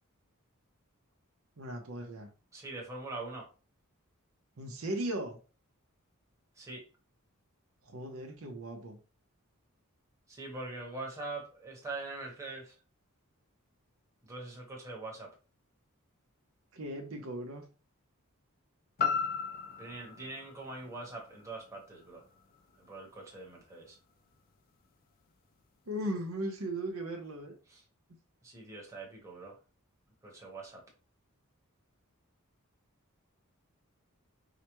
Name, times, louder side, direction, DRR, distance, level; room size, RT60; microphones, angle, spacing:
voice 1, 1.6-2.3 4.6-5.4 7.8-9.0 16.7-17.7 25.9-27.6, right 1 dB, 70° right, 3 dB, 0.8 m, -37 dB
voice 2, 2.5-3.5 6.6-6.8 10.3-12.7 14.3-15.3 19.8-22.2 22.8-24.0 27.7-27.8 28.4-29.6 30.2-30.8, right 2 dB, 15° right, -2 dB, 1.1 m, -43 dB
sound 1, 19.0-23.1 23.5-23.6, left 6 dB, 40° left, 0.4 m, -37 dB
4.8 x 2.2 x 3.0 m, 0.34 s
head